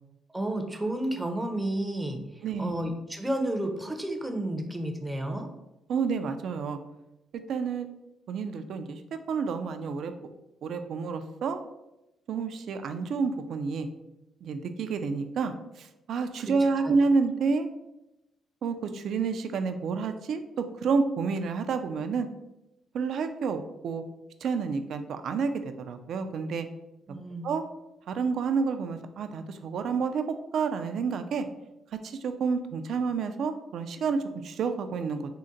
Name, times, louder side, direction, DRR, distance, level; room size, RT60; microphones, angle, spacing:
voice 1, 0.3-5.5 16.8-16.9 27.1-27.5, right 1 dB, 10° right, 4 dB, 0.6 m, -31 dB
voice 2, 2.4-2.7 5.9-6.8 7.5-7.9 8.3-9.0 9.3-10.1 10.6-11.6 12.3-13.9 14.4-17.7 18.6-22.3 22.9-24.0 24.4-25.5 25.9-26.7 27.4-27.6 28.1-30.3 30.5-31.5 32.0-35.2, right 5 dB, 70° right, 8 dB, 0.3 m, -29 dB
3.7 x 2.1 x 3.9 m, 0.93 s
cardioid pair, 90°, 0 cm